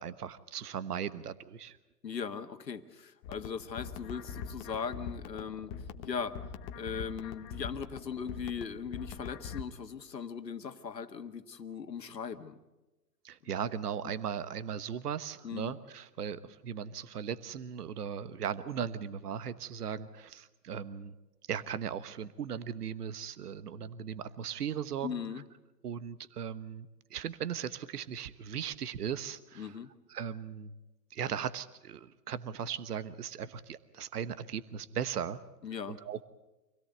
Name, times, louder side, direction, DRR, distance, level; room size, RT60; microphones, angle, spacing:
voice 1, 0.0-1.8 13.2-21.1 21.5-25.4 25.8-29.8 30.1-30.8 31.1-35.4 35.9-36.2, right 8 dB, 70° right, 14 dB, 1.3 m, -38 dB
voice 2, 2.0-6.4 6.8-12.6 15.4-15.8 25.0-25.4 29.6-29.9 35.6-36.0, left 6 dB, 85° left, 9 dB, 1.7 m, -39 dB
sound 1, 3.2-9.6, left 6 dB, 25° left, 1.1 m, -43 dB
26.0 x 17.0 x 8.0 m, 1.1 s
hypercardioid pair, 130°, 49 cm